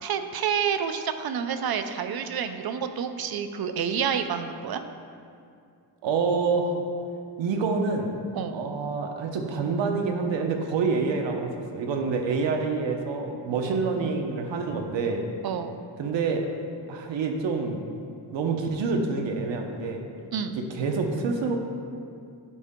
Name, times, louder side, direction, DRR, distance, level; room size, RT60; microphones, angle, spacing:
voice 1, 0.0-4.8 8.3-8.6 13.7-13.8 15.4-15.8 20.3-20.6, right 7 dB, 60° right, 9 dB, 0.6 m, -29 dB
voice 2, 6.0-6.7 7.4-8.1 8.5-15.2 16.0-16.4 16.9-17.8 18.3-20.1 20.5-21.6, right 4 dB, 85° right, 3 dB, 1.0 m, -27 dB
11.0 x 5.5 x 3.7 m, 2.4 s
cardioid pair, 110°, 43 cm